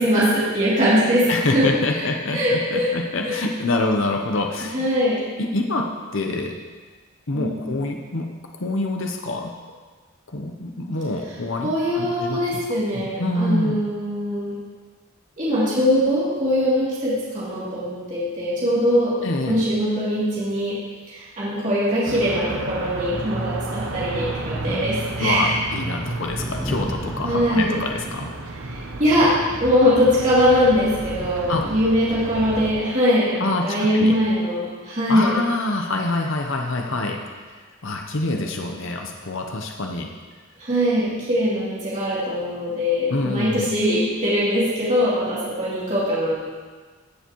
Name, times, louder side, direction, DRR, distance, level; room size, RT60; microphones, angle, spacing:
voice 1, 0.0-1.6 2.3-2.9 3.2-3.4 4.7-5.2 7.3-7.6 11.6-14.6 15.4-19.1 19.5-20.8 21.1-25.5 27.2-27.7 28.7-29.3 29.6-35.3 40.6-46.3, equal, 35° right, -10 dB, 2.9 m, -21 dB
voice 2, 1.3-4.8 5.4-6.5 7.3-8.3 8.5-9.5 10.3-12.7 12.9-13.8 19.2-19.6 25.2-28.3 31.5-31.6 33.4-34.2 35.1-37.2 37.5-37.6 37.8-40.1 43.1-43.7, left 2 dB, 65° left, 2 dB, 0.8 m, -26 dB
sound 1, 22.0-32.7, right 2 dB, 70° right, 0.8 m, -32 dB
Thunder, 23.9-28.9 29.4-29.5 30.8-30.9, equal, 5° left, 1.0 m, -36 dB
15.0 x 6.9 x 3.1 m, 1.4 s
head